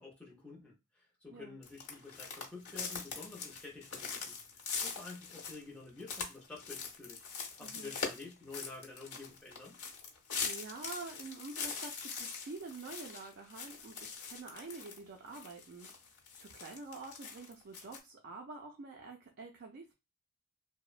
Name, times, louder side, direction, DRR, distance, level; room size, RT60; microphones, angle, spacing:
voice 1, 0.0-4.3 4.8-7.2 7.6-9.8, left 3 dB, 5° left, -4 dB, 0.6 m, -49 dB
sound 1, 1.6-15.0 15.3-18.0, left 5 dB, 90° left, 0.8 m, -42 dB
voice 2, 7.6-7.9 10.4-15.9 16.4-19.9, right 3 dB, 50° right, 1 dB, 0.4 m, -47 dB
2.9 x 2.0 x 2.4 m, 0.24 s
head